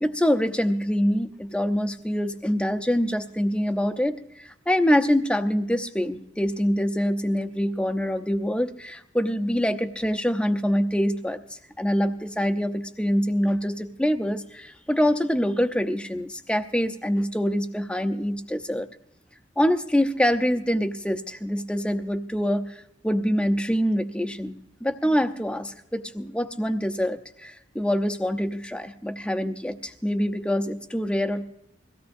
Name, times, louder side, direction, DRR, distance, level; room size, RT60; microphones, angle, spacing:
voice 1, 0.0-11.4 11.8-18.9 19.6-22.8 23.0-24.5 24.8-31.4, equal, 5° left, 8 dB, 0.7 m, -25 dB
23.0 x 16.5 x 2.6 m, 0.80 s
head